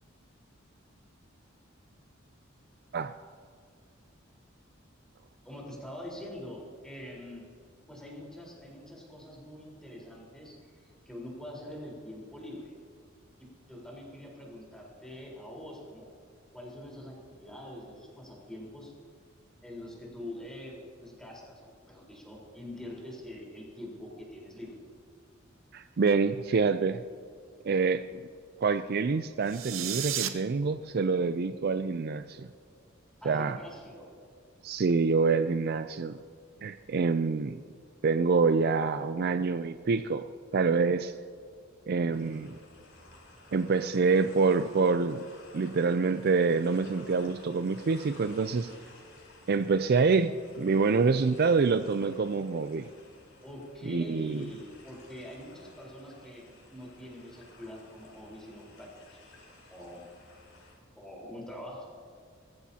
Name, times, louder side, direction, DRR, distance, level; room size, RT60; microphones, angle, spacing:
voice 1, 5.4-7.4 7.9-12.8 13.7-16.1 16.5-18.9 19.6-24.9 33.2-34.1 53.4-59.2 59.7-60.0 60.9-61.8, left 1 dB, 5° left, -3 dB, 4.2 m, -44 dB
voice 2, 25.7-27.0 27.6-28.0 28.6-32.5 33.3-33.6 34.6-36.2 36.6-37.6 38.0-41.1 41.9-42.6 43.5-45.2 45.5-48.7 49.5-52.9 53.9-54.4, right 4 dB, 50° right, 11 dB, 0.4 m, -26 dB
sound 1, 29.4-30.3, right 11 dB, 75° right, 0.8 m, -32 dB
sound 2, 42.1-60.7, left 2 dB, 70° left, 4.2 m, -55 dB
22.5 x 14.5 x 2.9 m, 2.2 s
head